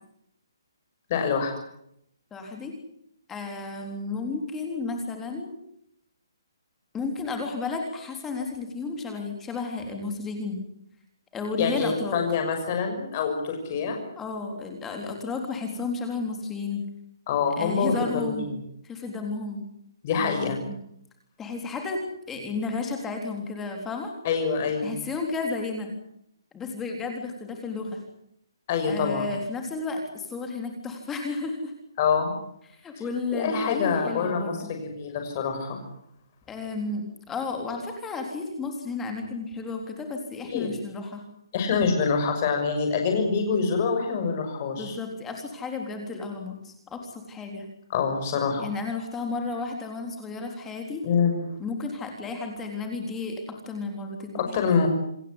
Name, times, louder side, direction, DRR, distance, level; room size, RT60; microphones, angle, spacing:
voice 1, 1.1-1.5 11.6-14.0 17.3-18.3 20.0-20.6 24.2-24.9 28.7-29.3 32.0-32.3 33.3-35.8 40.5-40.7 41.5-44.9 47.9-48.7 51.0-51.5 54.4-54.9, left 5 dB, 25° left, 4 dB, 6.2 m, -25 dB
voice 2, 2.3-2.7 3.3-5.5 6.9-10.6 11.3-12.2 14.2-16.8 17.6-18.5 18.8-19.6 20.1-20.7 21.4-24.1 24.8-25.9 26.5-28.0 28.9-31.7 32.7-34.6 36.5-41.2 44.8-47.6 48.6-51.0 51.6-54.6, left 4 dB, 10° left, 3 dB, 3.6 m, -32 dB
28.0 x 15.5 x 9.9 m, 0.76 s
hypercardioid pair, 175°, 2 cm